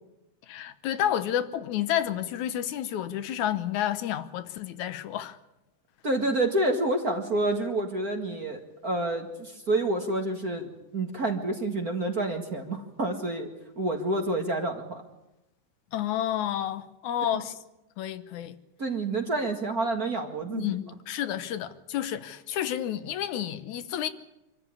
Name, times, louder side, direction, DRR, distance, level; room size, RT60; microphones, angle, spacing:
voice 1, 0.5-5.4 15.9-17.5 18.0-18.6 20.4-24.1, left 11 dB, 75° left, 2.3 m, -30 dB
voice 2, 6.0-13.5 13.8-15.0 17.3-17.4 18.8-20.8, right 2 dB, 35° right, 1.9 m, -28 dB
25.5 x 14.0 x 9.8 m
omnidirectional pair, 3.5 m